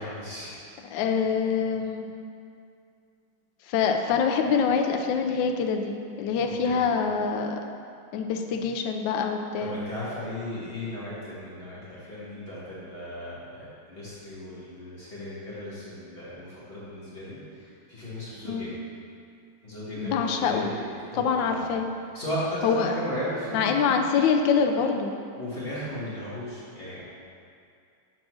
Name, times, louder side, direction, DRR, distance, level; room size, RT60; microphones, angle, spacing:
voice 1, 0.0-1.0 6.4-6.8 9.6-18.7 19.6-21.7 22.1-23.8 25.4-27.0, left 1 dB, 30° left, -9 dB, 1.5 m, -36 dB
voice 2, 0.9-2.0 3.7-7.6 8.1-9.8 18.4-18.8 20.0-20.7 21.2-21.9 22.6-23.0 23.5-25.1, left 6 dB, 75° left, 4 dB, 1.1 m, -25 dB
6.2 x 3.7 x 6.0 m, 2.4 s
omnidirectional pair, 2.3 m